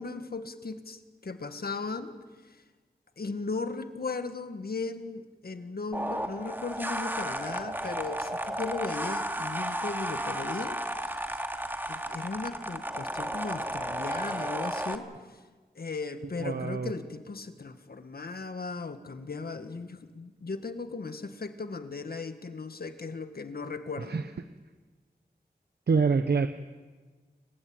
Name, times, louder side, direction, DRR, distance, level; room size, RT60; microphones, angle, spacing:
voice 1, 0.0-2.1 3.2-10.8 11.9-15.1 15.7-24.2, left 4 dB, 65° left, 9 dB, 1.8 m, -37 dB
sound 1, 5.9-15.0, right 1 dB, 10° right, 2.3 m, -33 dB
voice 2, 16.4-16.9 24.1-24.2 25.9-26.5, right 5 dB, 70° right, 9 dB, 0.9 m, -25 dB
29.5 x 15.5 x 9.0 m, 1.4 s
cardioid pair, 45°, 17 cm